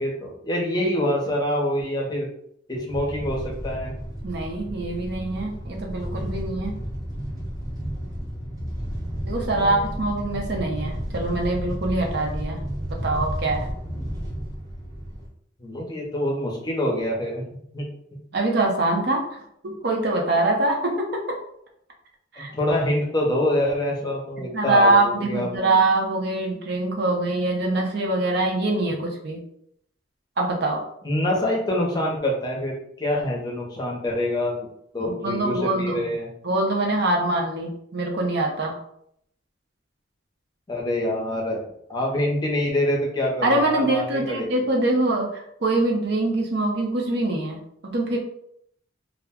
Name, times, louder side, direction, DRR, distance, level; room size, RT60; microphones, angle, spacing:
voice 1, 0.0-2.3 2.7-3.9 9.5-9.9 15.6-17.4 17.7-17.9 22.4-25.7 31.0-34.7 34.9-36.3 40.7-44.5, left 1 dB, 20° left, -1 dB, 0.6 m, -26 dB
sound 1, 2.9-15.3, equal, 20° right, 0.8 m, -32 dB
voice 2, 4.2-6.8 9.2-12.6 13.0-13.7 18.3-21.4 22.3-22.5 24.5-29.4 30.4-30.8 35.0-36.1 36.4-38.8 43.4-48.2, right 2 dB, 60° right, 0 dB, 0.6 m, -24 dB
2.4 x 2.1 x 3.5 m, 0.70 s
head